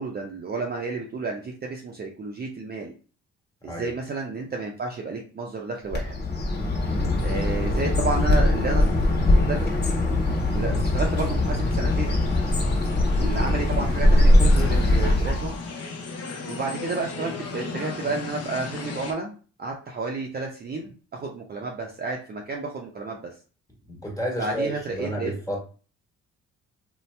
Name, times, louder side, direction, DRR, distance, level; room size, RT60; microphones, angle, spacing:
voice 1, 0.0-2.9 3.6-6.1 7.2-8.9 9.4-9.7 10.5-12.3 13.2-15.5 16.5-19.3 19.6-23.3 24.4-25.3, right 3 dB, 30° right, 0 dB, 0.5 m, -31 dB
Bird, 5.9-15.6, left 1 dB, 35° left, 1.2 m, -21 dB
sound 1, 7.0-19.1, left 4 dB, 55° left, 0.8 m, -38 dB
voice 2, 23.9-25.6, equal, 10° left, -1 dB, 1.3 m, -31 dB
2.7 x 2.2 x 3.2 m, 0.38 s
cardioid pair, 90°, 30 cm